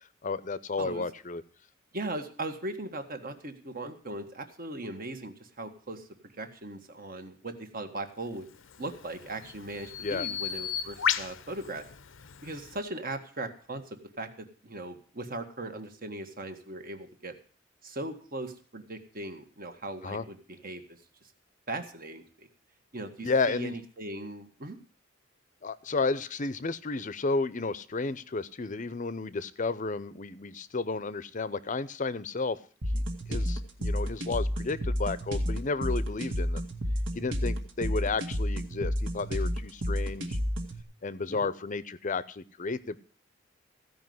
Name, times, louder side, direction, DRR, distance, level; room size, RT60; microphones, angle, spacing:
voice 1, 0.2-1.4 10.0-10.3 20.0-20.2 23.2-23.7 25.6-32.6 32.9-36.6 37.2-40.4 41.0-43.0, left 3 dB, 40° left, 16 dB, 0.7 m, -32 dB
voice 2, 1.9-6.1 6.4-8.5 8.8-11.8 12.4-17.3 17.8-21.0 21.7-22.5 22.9-24.8 41.3-41.5, right 2 dB, 45° right, 7 dB, 1.5 m, -39 dB
Bird vocalization bird call bird song, 8.6-12.8, left 8 dB, 85° left, 0.7 m, -35 dB
sound 1, 32.8-40.8, equal, 70° right, 2.1 m, -31 dB
15.5 x 5.3 x 9.4 m, 0.43 s
head